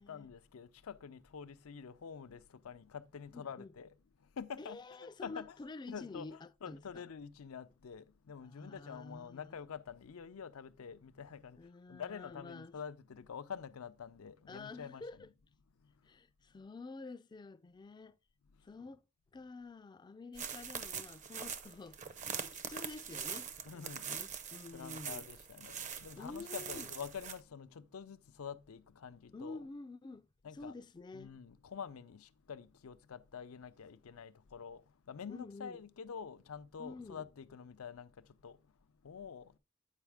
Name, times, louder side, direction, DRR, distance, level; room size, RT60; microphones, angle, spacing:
voice 1, 0.0-3.9 4.2-5.5 5.9-15.0 15.8-16.1 18.5-18.6 23.6-24.1 24.7-29.6 30.4-30.7 31.1-38.7 39.0-39.6, left 6 dB, 90° left, 0.5 m, -47 dB
voice 2, 3.3-3.7 4.6-7.0 8.4-9.6 11.6-12.8 14.5-15.3 16.0-18.2 18.6-19.0 19.3-25.3 26.2-26.9 29.3-31.3 35.3-35.8 36.8-37.3, left 3 dB, 20° left, 0.3 m, -49 dB
sound 1, 20.4-27.4, right 7 dB, 35° right, 0.6 m, -43 dB
8.2 x 4.9 x 3.4 m
head